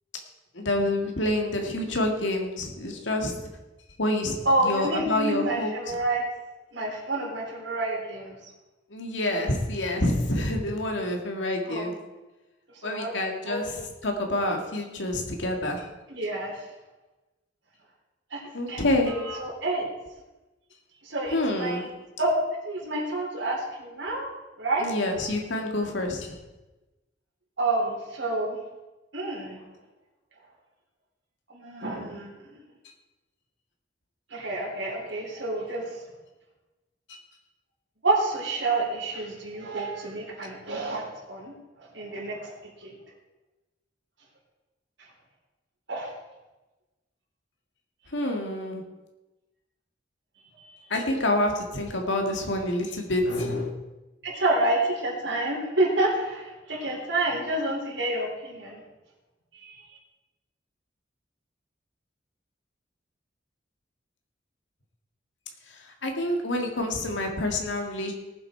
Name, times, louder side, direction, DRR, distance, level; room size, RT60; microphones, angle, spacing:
voice 1, 0.5-3.4 4.0-4.4 4.6-5.9 8.9-11.9 12.8-15.8 18.5-19.1 21.3-21.9 24.8-26.4 48.1-48.8 50.9-53.7 66.0-68.1, left 1 dB, 90° left, 3 dB, 2.0 m, -27 dB
voice 2, 4.4-6.2 6.7-8.3 11.7-11.9 12.8-13.1 13.4-13.8 16.1-16.6 18.3-18.4 18.7-19.9 21.0-21.9 22.2-24.3 24.6-24.9 27.6-28.6 29.1-29.6 31.5-32.4 34.3-36.0 38.0-43.0 45.9-46.2 50.6-50.7 54.2-58.8 59.5-59.8, right 2 dB, 80° right, -3 dB, 4.0 m, -29 dB
18.0 x 7.9 x 4.6 m, 1.1 s
head